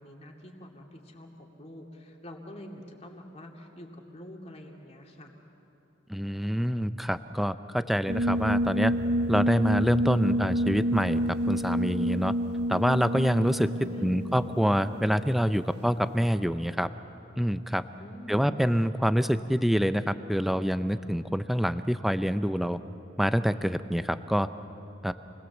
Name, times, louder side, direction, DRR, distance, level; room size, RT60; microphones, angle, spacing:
voice 1, 0.0-5.3 13.8-14.4 18.0-18.7, equal, 35° left, 1 dB, 2.5 m, -45 dB
voice 2, 6.1-8.9 9.3-11.2 11.5-12.3 12.7-13.7 14.0-16.9 17.4-17.8 18.3-22.8 23.2-24.5 25.0-25.1, equal, ahead, 11 dB, 0.5 m, -26 dB
sound 1, 8.1-15.6, equal, 55° right, 0.6 m, -29 dB
28.0 x 20.5 x 7.3 m, 3.0 s
head